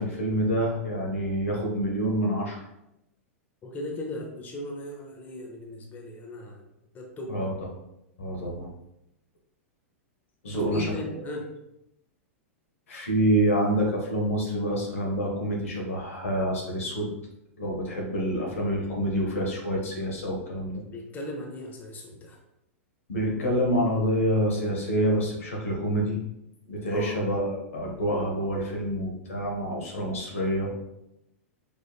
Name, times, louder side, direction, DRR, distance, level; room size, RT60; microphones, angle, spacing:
voice 1, 0.0-2.6 7.3-7.5 8.2-8.7 10.4-11.2 12.9-17.1 17.6-20.8 23.1-26.2 26.7-30.7, equal, 75° left, -1 dB, 1.2 m, -27 dB
voice 2, 3.6-6.6 6.9-7.4 10.5-11.5 20.9-22.4 26.9-27.2, left 2 dB, 25° left, 0 dB, 0.8 m, -37 dB
5.0 x 3.4 x 2.3 m, 0.86 s
hypercardioid pair, 105°, 7 cm